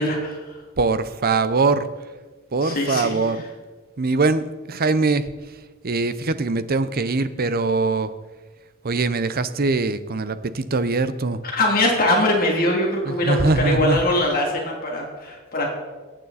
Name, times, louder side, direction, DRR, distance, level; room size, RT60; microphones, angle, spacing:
voice 1, 0.0-0.6 2.6-3.5 11.4-15.7, left 1 dB, 45° left, -1 dB, 2.9 m, -22 dB
voice 2, 0.8-1.8 2.5-3.4 4.0-5.2 5.8-8.1 8.8-10.4 10.7-11.4 13.1-14.0, right 3 dB, 45° right, 13 dB, 0.7 m, -22 dB
22.0 x 9.1 x 4.2 m, 1.3 s
head